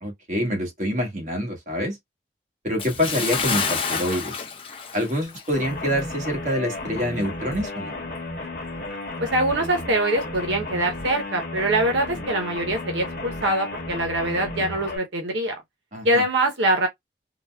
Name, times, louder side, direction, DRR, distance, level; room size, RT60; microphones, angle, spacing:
voice 1, 0.0-2.0 2.6-4.3 4.9-8.0 15.9-16.2, equal, 40° right, 1.3 m, -26 dB
Bathtub (filling or washing) / Splash splatter, 2.8-5.7 6.0-6.2 6.7-6.8, left 5 dB, 30° left, 0.7 m, -29 dB
sound 1, 5.5-15.0, left 2 dB, 50° left, 1.0 m, -33 dB
voice 2, 9.2-15.5 16.0-16.9, right 1 dB, 85° right, 0.8 m, -23 dB
3.8 x 2.1 x 2.2 m
head